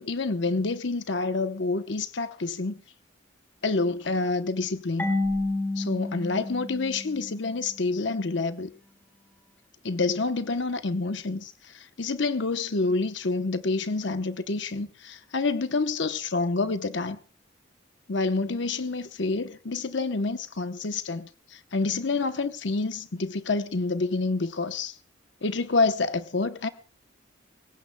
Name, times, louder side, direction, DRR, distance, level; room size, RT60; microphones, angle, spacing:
voice 1, 0.0-2.8 3.6-5.1 5.8-8.7 9.8-17.2 18.1-25.0 25.4-26.7, left 3 dB, 60° left, 0.8 m, -28 dB
Marimba xylophone / Wood, 5.0-7.7, left 2 dB, 10° left, 4.3 m, -30 dB
24.5 x 15.5 x 2.2 m
head